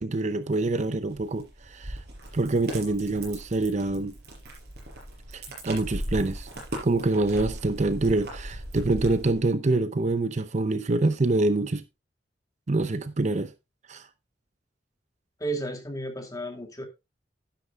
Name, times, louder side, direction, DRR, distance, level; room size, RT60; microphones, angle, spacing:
voice 1, 0.0-2.0 2.3-4.2 5.3-6.5 6.8-11.8 12.7-13.5 13.9-14.1, right 2 dB, 40° right, 0.6 m, -26 dB
sound 1, 1.1-9.4, right 1 dB, 60° right, 5.1 m, -38 dB
voice 2, 15.4-16.9, right 2 dB, 20° left, 2.4 m, -33 dB
11.5 x 10.5 x 2.4 m
head